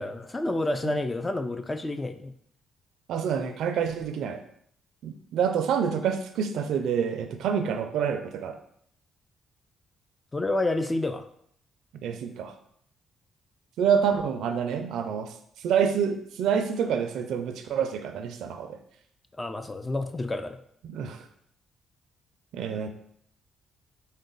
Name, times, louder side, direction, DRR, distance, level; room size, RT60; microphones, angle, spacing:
voice 1, 0.0-2.3 10.3-11.2 19.4-20.6, left 2 dB, 20° left, 9 dB, 0.3 m, -29 dB
voice 2, 3.1-4.4 5.0-8.6 12.0-12.5 13.8-15.3 15.6-18.8 20.8-21.2 22.5-22.9, right 7 dB, 80° right, 8 dB, 0.4 m, -27 dB
4.0 x 2.1 x 3.8 m, 0.68 s
cardioid pair, 90°, 0 cm